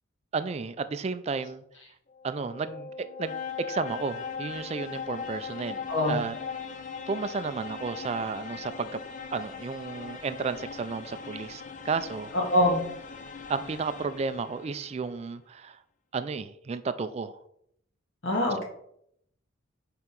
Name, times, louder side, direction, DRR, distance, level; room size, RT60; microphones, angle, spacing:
voice 1, 0.3-1.6 2.2-6.3 7.1-9.0 9.3-12.3 13.5-15.8 16.1-17.4, right 4 dB, 30° right, 12 dB, 0.3 m, -33 dB
sound 1, 2.1-14.9, left 6 dB, 40° left, 0.5 m, -40 dB
voice 2, 5.9-6.2 12.3-12.8 18.2-18.6, left 1 dB, 70° left, -1 dB, 1.6 m, -24 dB
5.5 x 3.8 x 4.5 m, 0.72 s
head